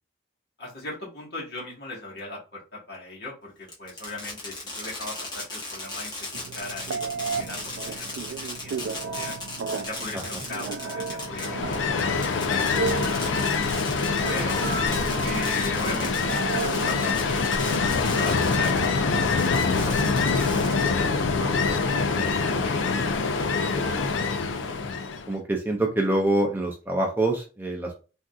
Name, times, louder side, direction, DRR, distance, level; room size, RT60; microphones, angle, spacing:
voice 1, 0.6-9.3 9.8-12.9 14.3-14.6 15.2-17.4 18.1-23.7, left 2 dB, 55° left, -4 dB, 1.4 m, -39 dB
Fireworks, 3.7-18.9 19.3-21.1, left 2 dB, 20° left, 0.9 m, -37 dB
Telephone, 6.3-17.5, right 5 dB, 80° right, 0.3 m, -34 dB
Ocean, 11.2-25.3, left 4 dB, 75° left, 0.4 m, -25 dB
voice 2, 22.3-22.8 25.3-27.9, right 1 dB, 10° right, 1 dB, 0.4 m, -26 dB
3.6 x 2.6 x 2.3 m, 0.33 s
head